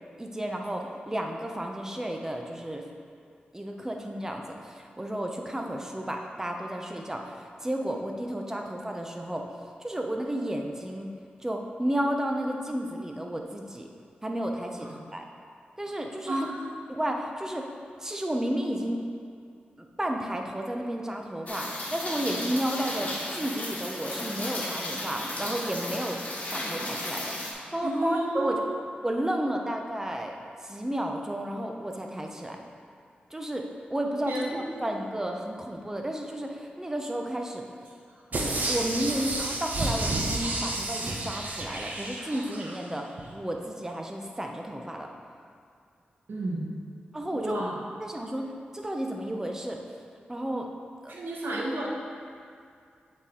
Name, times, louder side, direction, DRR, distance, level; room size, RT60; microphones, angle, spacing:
voice 1, 0.2-2.9 3.5-9.5 9.8-11.1 11.4-13.9 14.2-15.2 15.8-16.5 16.9-17.7 18.0-19.0 19.8-26.2 26.5-28.6 29.0-30.4 30.6-32.6 33.3-37.6 38.3-45.1 47.1-47.6 48.0-49.8 50.3-50.7 51.0-51.1, right 1 dB, 15° right, 2 dB, 0.7 m, -32 dB
voice 2, 16.3-16.7 27.8-28.8 34.3-35.0 46.3-46.6 47.3-47.8 51.1-51.9, right 1 dB, 75° right, -4 dB, 1.3 m, -31 dB
Rain, 21.5-27.5, left 1 dB, 45° left, 1.4 m, -34 dB
sound 1, 38.3-42.8 43.2-43.3, right 2 dB, 50° right, 0.9 m, -31 dB
7.8 x 4.3 x 3.8 m, 2.3 s
cardioid pair, 70°, 3 cm